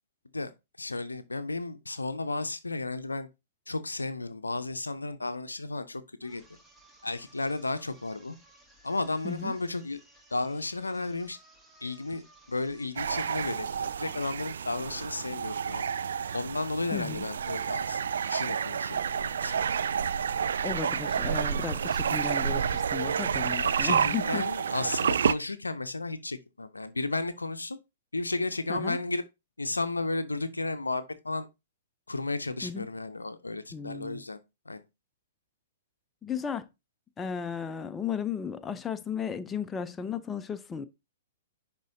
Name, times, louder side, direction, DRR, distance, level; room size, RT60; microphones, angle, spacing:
voice 1, 0.8-3.3 3.7-6.4 7.0-8.4 8.8-10.0 10.3-11.4 11.8-15.8 16.3-18.0 18.3-19.6 23.6-27.8 28.1-29.2 29.6-31.5 32.1-34.4 34.7-34.8, left 2 dB, 75° left, 0.5 m, -33 dB
sound 1, 6.2-14.0, right 1 dB, 5° right, 1.2 m, -59 dB
sound 2, 13.0-25.3, right 7 dB, 60° right, 0.3 m, -29 dB
voice 2, 16.9-17.2 20.6-24.4 28.7-29.0 32.6-32.9 33.7-34.2 36.2-36.7 37.2-40.9, left 7 dB, 15° left, 0.5 m, -35 dB
10.5 x 3.7 x 2.7 m
figure-of-eight pair, 115°, 0 cm